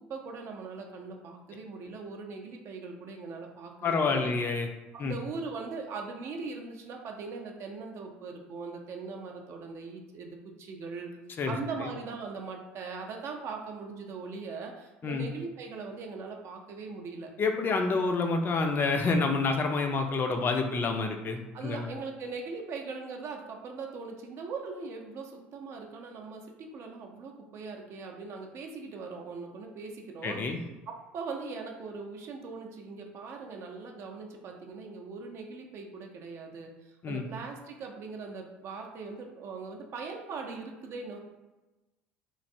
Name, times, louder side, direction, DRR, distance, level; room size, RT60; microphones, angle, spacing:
voice 1, 0.1-4.3 4.9-11.1 11.5-17.3 21.5-30.4 30.9-41.2, right 4 dB, 45° right, 2 dB, 0.5 m, -40 dB
voice 2, 3.8-4.7 5.0-5.1 11.4-11.9 15.0-15.3 17.4-21.9 30.2-30.6 37.0-37.3, left 4 dB, 35° left, 4 dB, 0.4 m, -28 dB
3.1 x 2.5 x 2.6 m, 1.1 s
hypercardioid pair, 65°, 6 cm